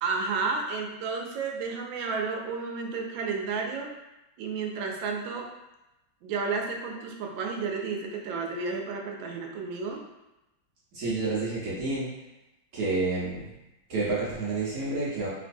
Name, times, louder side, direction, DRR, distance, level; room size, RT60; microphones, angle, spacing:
voice 1, 0.0-3.9 4.4-5.5 6.2-10.0, right 4 dB, 85° right, 1 dB, 1.3 m, -32 dB
voice 2, 10.9-12.1 12.7-13.5 13.9-15.3, right 3 dB, 60° right, -7 dB, 1.2 m, -29 dB
3.3 x 3.0 x 2.5 m, 0.96 s
omnidirectional pair, 2.1 m